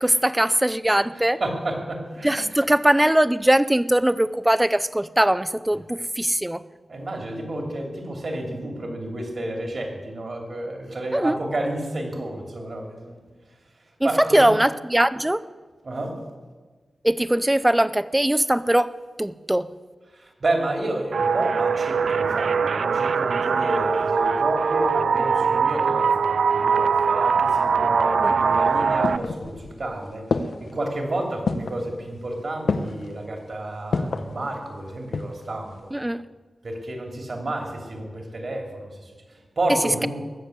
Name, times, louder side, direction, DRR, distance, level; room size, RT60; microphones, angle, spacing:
voice 1, 0.0-1.4 2.2-6.6 11.1-11.4 14.0-15.4 17.0-19.7 28.2-28.3 35.9-36.2, right 1 dB, 10° right, 15 dB, 0.5 m, -21 dB
voice 2, 0.9-2.6 6.9-13.2 14.0-14.5 15.8-16.2 20.1-35.9 36.6-39.0 39.6-40.1, right 1 dB, 55° right, 2 dB, 3.1 m, -30 dB
sound 1, 21.1-29.2, right 5 dB, 90° right, 0.4 m, -22 dB
sound 2, 28.5-29.8 30.3-30.8 31.5-31.9 32.7-33.1 33.9-34.3 34.9-35.5 35.8-35.9, left 4 dB, 85° left, 1.0 m, -27 dB
20.5 x 7.3 x 8.0 m, 1.4 s
wide cardioid pair, 105°, 0 cm